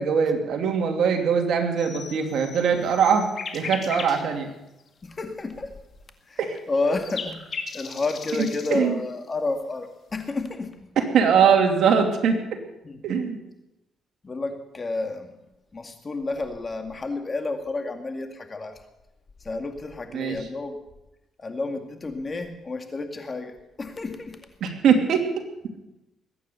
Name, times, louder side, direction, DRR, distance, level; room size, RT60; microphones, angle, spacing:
voice 1, 0.0-3.3 3.5-4.5 6.4-6.6 8.4-9.0 11.1-12.4 13.0-13.4 20.1-20.4 24.6-25.4, right 6 dB, 70° right, 4 dB, 2.7 m, -21 dB
sound 1, 1.8-4.2 4.8-4.9 6.4-8.8, left 5 dB, 50° left, 2.3 m, -37 dB
voice 2, 5.0-5.7 6.3-6.4 6.7-7.4 7.7-10.7 12.8-13.0 14.2-15.3 15.7-18.8 19.4-20.8 21.4-24.4, left 3 dB, 30° left, 6 dB, 2.2 m, -30 dB
21.5 x 9.4 x 7.0 m, 0.94 s
cardioid pair, 90°, 0 cm